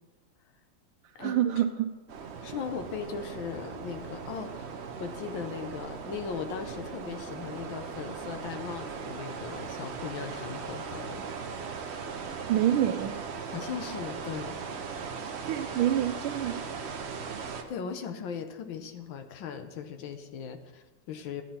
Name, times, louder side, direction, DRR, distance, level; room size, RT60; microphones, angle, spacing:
voice 1, 1.2-1.9 12.5-13.1 15.4-16.6, right 11 dB, 85° right, 5 dB, 1.4 m, -26 dB
sound 1, 2.1-17.6, right 5 dB, 70° right, 0.6 m, -39 dB
voice 2, 2.4-11.3 13.5-14.6 17.3-21.4, left 7 dB, 75° left, 7 dB, 1.5 m, -38 dB
12.0 x 9.1 x 4.3 m, 1.1 s
omnidirectional pair, 2.2 m